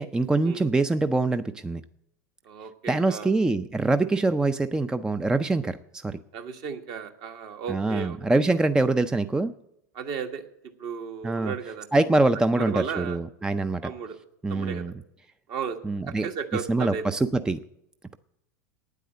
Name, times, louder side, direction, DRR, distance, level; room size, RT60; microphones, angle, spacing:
voice 1, 0.0-1.8 2.9-6.2 7.7-9.5 11.2-11.5 11.9-13.9 14.4-14.9 15.8-16.3 16.7-17.6, right 2 dB, 5° right, 12 dB, 0.4 m, -24 dB
voice 2, 2.4-3.3 4.1-4.2 6.3-8.2 9.9-10.4 10.8-11.9 12.5-13.2 13.8-14.2 14.5-14.8 15.5-15.8 16.1-17.0, right 7 dB, 50° right, 5 dB, 1.5 m, -34 dB
9.3 x 8.2 x 9.4 m, 0.81 s
hypercardioid pair, 100°, 10 cm